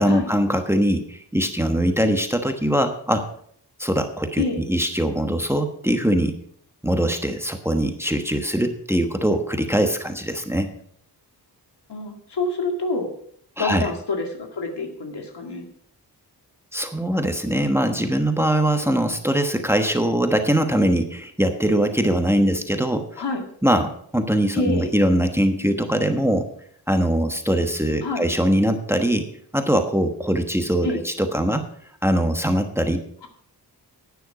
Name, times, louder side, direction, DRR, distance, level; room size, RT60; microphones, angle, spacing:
voice 1, 0.0-3.3 3.8-6.4 6.8-10.7 13.6-13.9 16.7-23.2 23.6-26.5 26.9-31.7 32.0-33.3, right 1 dB, 5° right, 6 dB, 1.2 m, -22 dB
voice 2, 11.9-13.1 13.6-15.7 23.2-23.4 24.5-24.9 28.0-28.3 30.8-31.0, left 3 dB, 75° left, 4 dB, 2.2 m, -27 dB
11.0 x 9.6 x 5.0 m, 0.62 s
wide cardioid pair, 95°, 42 cm